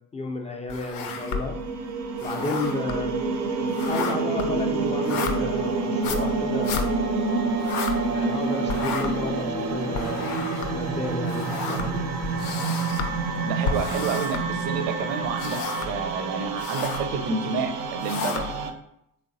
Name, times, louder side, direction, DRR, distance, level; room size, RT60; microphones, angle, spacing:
voice 1, 0.1-1.6 2.2-3.2 3.9-7.0 8.1-10.3 10.7-12.0, left 3 dB, 15° left, 4 dB, 0.4 m, -32 dB
sound 1, 0.7-1.7 2.0-8.4 8.7-14.9 15.2-16.1 16.4-17.1 17.7-18.7, left 5 dB, 70° left, 0.6 m, -33 dB
sound 2, 1.0-18.7, right 4 dB, 35° right, 0.5 m, -28 dB
voice 2, 13.4-18.5, right 5 dB, 80° right, 6 dB, 0.6 m, -29 dB
3.3 x 3.2 x 2.6 m, 0.78 s
hypercardioid pair, 60°, 47 cm